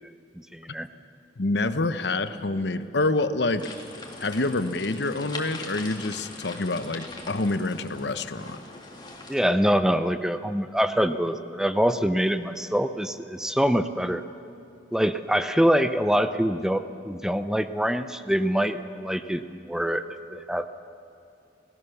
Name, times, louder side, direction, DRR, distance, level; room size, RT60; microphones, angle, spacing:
voice 1, 0.5-0.9 9.3-14.2 14.9-20.0 20.3-20.7, equal, 5° right, 10 dB, 0.6 m, -24 dB
voice 2, 1.4-3.7 4.2-8.6, left 2 dB, 70° left, 11 dB, 1.0 m, -27 dB
sound 1, 3.6-9.4, left 3 dB, 25° left, 2.7 m, -41 dB
29.5 x 18.0 x 7.1 m, 2.7 s
head